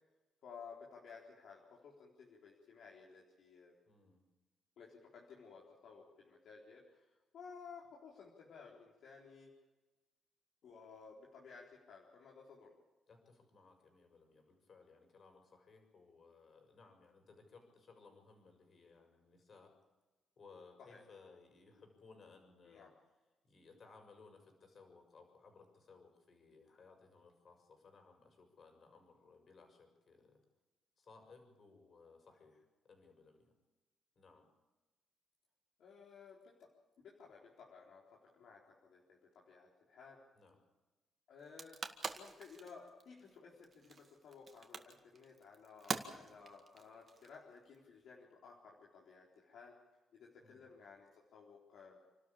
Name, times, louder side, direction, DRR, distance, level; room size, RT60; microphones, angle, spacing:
voice 1, 0.4-3.7 4.8-7.1 7.3-9.5 10.6-12.7 20.8-21.0 22.7-22.9 35.8-36.7 37.0-38.0 38.3-40.2 41.3-49.7 50.1-52.0, left 5 dB, 70° left, -2 dB, 4.0 m, -56 dB
voice 2, 3.8-4.3 13.1-19.7 20.4-22.9 23.4-30.4 31.0-33.5 34.1-34.5 40.3-40.6 50.4-50.7, left 4 dB, 45° left, 5 dB, 6.7 m, -62 dB
sound 1, 41.4-47.8, right 4 dB, 35° right, 2.0 m, -45 dB
28.5 x 12.5 x 8.7 m, 1.2 s
cardioid pair, 105°, 0 cm